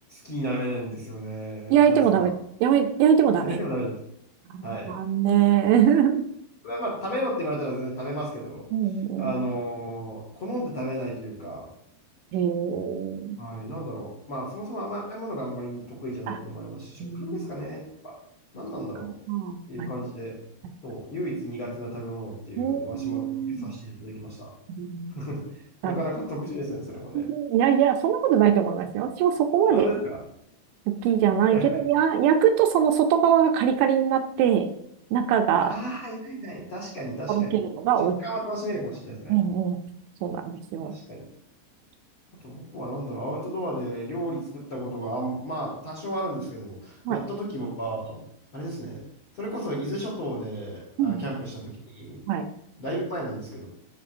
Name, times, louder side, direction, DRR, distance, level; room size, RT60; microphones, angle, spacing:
voice 1, 0.1-2.3 3.4-4.0 4.6-4.9 5.9-6.0 6.6-8.7 9.2-11.7 13.4-18.1 18.5-19.1 19.7-20.4 20.8-24.5 25.1-25.4 25.8-27.2 29.7-30.2 31.5-31.7 35.6-37.6 38.2-39.4 40.8-41.2 42.4-48.2 48.5-49.0 49.3-52.3 52.8-53.7, right 1 dB, 50° left, -4 dB, 1.7 m, -33 dB
voice 2, 1.7-2.3 2.6-3.6 4.5-6.3 8.7-9.3 12.3-13.4 16.3-16.4 17.0-17.5 19.3-19.9 22.6-23.7 24.7-25.1 25.8-26.0 27.1-29.9 31.0-34.7 35.1-35.7 37.3-38.2 39.3-39.8 40.2-40.9 47.1-47.2 51.0-51.3 52.3-52.4, right 9 dB, 80° right, 5 dB, 2.9 m, -22 dB
13.5 x 6.8 x 2.5 m, 0.73 s
omnidirectional pair, 5.5 m